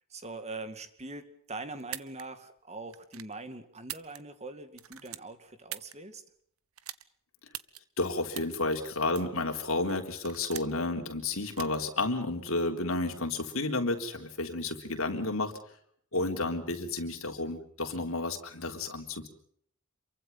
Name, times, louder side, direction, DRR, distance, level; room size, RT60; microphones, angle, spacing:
voice 1, 0.1-6.2, right 2 dB, 30° right, 9 dB, 2.3 m, -42 dB
sound 1, 1.8-2.2 2.9-3.3 3.8-4.5 4.7-5.9 6.8-7.0 7.5-7.8 8.3-8.6 9.1-9.4 9.9-10.8 11.5-11.8, right 13 dB, 75° right, 1.1 m, -42 dB
voice 2, 8.0-15.6 16.1-19.3, left 2 dB, 65° left, 3 dB, 3.8 m, -31 dB
27.5 x 23.5 x 5.7 m, 0.65 s
head